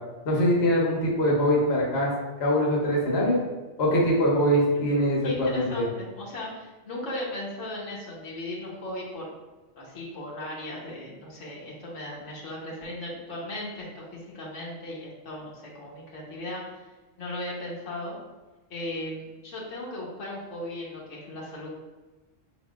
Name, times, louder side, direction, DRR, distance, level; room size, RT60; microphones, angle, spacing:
voice 1, 0.2-2.1 2.4-3.4 3.8-5.8, equal, 60° left, -3 dB, 1.2 m, -23 dB
voice 2, 5.2-9.3 9.8-16.9 17.2-18.2 18.7-21.7, left 1 dB, 80° left, -4 dB, 1.4 m, -37 dB
5.6 x 3.6 x 2.4 m, 1.2 s
omnidirectional pair, 1.3 m